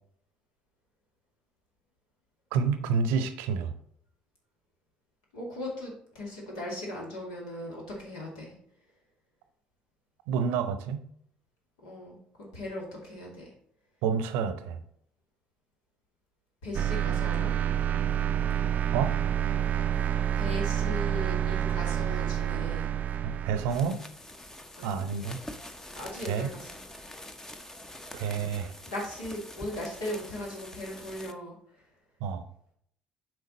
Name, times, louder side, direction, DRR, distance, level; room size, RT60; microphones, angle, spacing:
voice 1, 2.5-3.7 10.3-11.0 14.0-14.8 18.9-19.2 23.2-24.0 24.8-25.4 26.2-26.5 28.1-28.7 32.2-32.4, right 6 dB, 65° right, 10 dB, 0.7 m, -29 dB
voice 2, 5.3-8.5 11.8-13.5 16.6-17.5 20.4-22.9 24.8-25.0 26.0-26.8 28.9-31.6, left 1 dB, 70° left, -2 dB, 2.4 m, -38 dB
sound 1, 16.7-23.9, right 10 dB, 45° right, 0.4 m, -28 dB
sound 2, 23.6-31.3, left 1 dB, 10° left, 0.8 m, -45 dB
7.8 x 4.9 x 4.1 m, 0.67 s
figure-of-eight pair, 55°, 4 cm